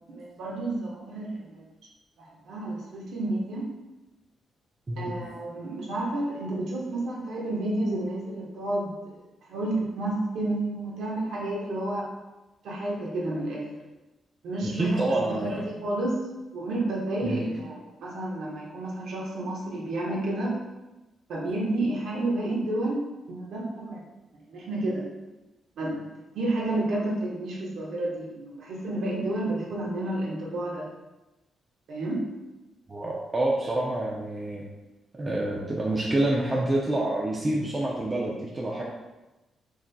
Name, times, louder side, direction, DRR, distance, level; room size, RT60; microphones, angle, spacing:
voice 1, 0.1-1.6 2.2-3.7 5.0-8.9 9.5-12.1 12.6-13.7 14.4-16.2 16.5-20.6 21.3-23.0 23.3-24.0 24.5-25.0 25.8-26.1 26.3-30.9 31.9-32.3, right 1 dB, 75° right, -4 dB, 1.2 m, -30 dB
voice 2, 4.9-5.2 14.7-15.6 17.2-17.4 32.9-34.6 35.1-38.8, right 1 dB, 30° right, -3 dB, 0.6 m, -27 dB
4.9 x 3.8 x 2.3 m, 1.0 s
cardioid pair, 70°, 0 cm